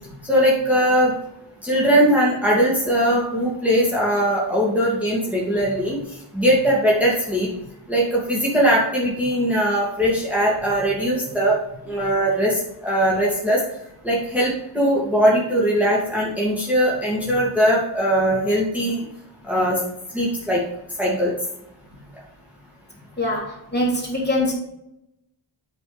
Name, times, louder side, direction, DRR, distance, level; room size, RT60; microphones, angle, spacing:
voice 1, 0.2-1.1 1.6-6.0 6.3-7.5 7.9-11.6 11.9-13.6 14.0-19.0 19.4-19.8 20.1-20.6 21.0-21.3, equal, 5° right, -6 dB, 2.5 m, -20 dB
voice 2, 23.2-24.5, left 1 dB, 20° left, -3 dB, 3.3 m, -23 dB
8.4 x 6.2 x 3.4 m, 0.83 s
wide cardioid pair, 45°, 49 cm